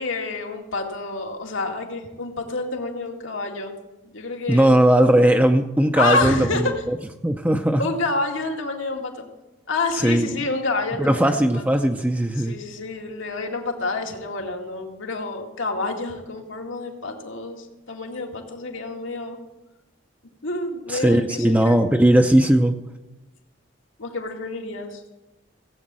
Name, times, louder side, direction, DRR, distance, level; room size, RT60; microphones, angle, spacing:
voice 1, 0.0-3.7 4.0-4.7 5.9-6.6 7.8-9.2 9.7-11.8 12.4-19.4 20.4-21.7 24.0-25.0, left 3 dB, 80° left, 2 dB, 2.1 m, -28 dB
voice 2, 4.5-7.0 7.2-7.9 9.9-10.4 11.0-12.5 20.9-22.7, right 1 dB, 10° right, 5 dB, 0.5 m, -18 dB
16.5 x 8.4 x 7.6 m, 1.0 s
head